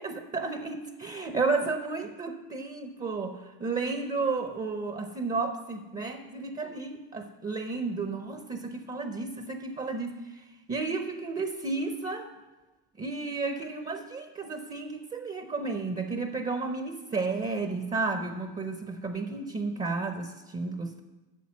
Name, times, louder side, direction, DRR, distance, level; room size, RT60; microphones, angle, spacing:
voice 1, 0.0-12.3 13.0-21.0, right 3 dB, 15° right, 7 dB, 0.6 m, -32 dB
9.1 x 6.7 x 7.3 m, 1.2 s
supercardioid pair, 120°, 50 cm